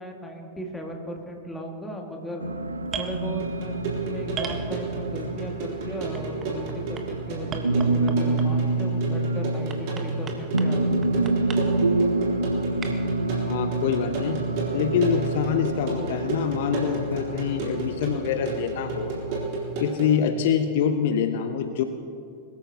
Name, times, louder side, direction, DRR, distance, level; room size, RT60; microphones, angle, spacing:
voice 1, 0.0-2.5 2.9-11.3, equal, 5° left, 1 dB, 2.0 m, -37 dB
sound 1, 2.4-19.4, right 2 dB, 80° right, 0.6 m, -28 dB
sound 2, 2.9-3.1 4.4-5.2 6.1-7.0 7.5-8.7 9.7-10.7 11.0-11.6 12.8-12.9, right 6 dB, 25° right, 1.3 m, -35 dB
sound 3, 3.4-20.2, right 4 dB, 45° right, 3.6 m, -32 dB
voice 2, 13.3-14.4 14.7-19.1 19.8-21.8, left 8 dB, 55° left, 9 dB, 0.7 m, -25 dB
21.5 x 14.0 x 2.9 m, 2.6 s
figure-of-eight pair, 90°, 0 cm